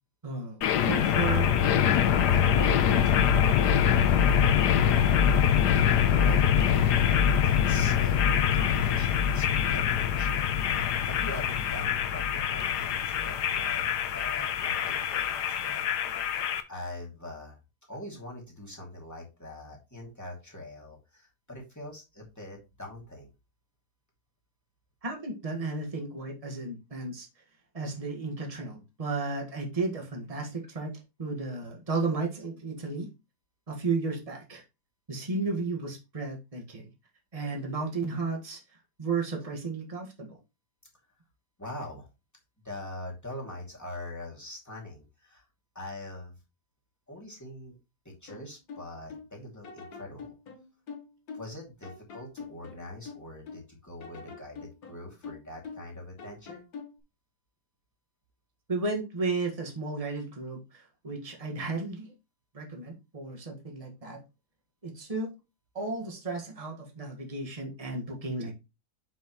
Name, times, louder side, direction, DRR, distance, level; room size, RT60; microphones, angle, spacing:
voice 1, 0.2-3.4 25.0-27.3 27.7-30.9 31.2-33.1 33.7-34.6 35.1-36.9 37.3-38.6 39.0-40.4 58.7-62.1 62.5-64.2 64.8-65.3 65.8-68.5, right 3 dB, 20° right, 1.8 m, -34 dB
sound 1, 0.6-16.6, left 8 dB, 85° left, 1.4 m, -24 dB
voice 2, 6.1-10.5 10.7-15.8 16.7-17.6 17.9-23.3 41.6-42.1 42.6-45.4 45.7-46.3 47.1-47.8 48.0-50.3 51.3-56.6, left 1 dB, 10° left, 2.5 m, -43 dB
sound 2, 48.3-49.3 49.6-51.6 51.8-53.7 54.0-55.9 56.2-57.0, left 5 dB, 65° left, 1.8 m, -44 dB
7.1 x 6.3 x 3.1 m
omnidirectional pair, 1.8 m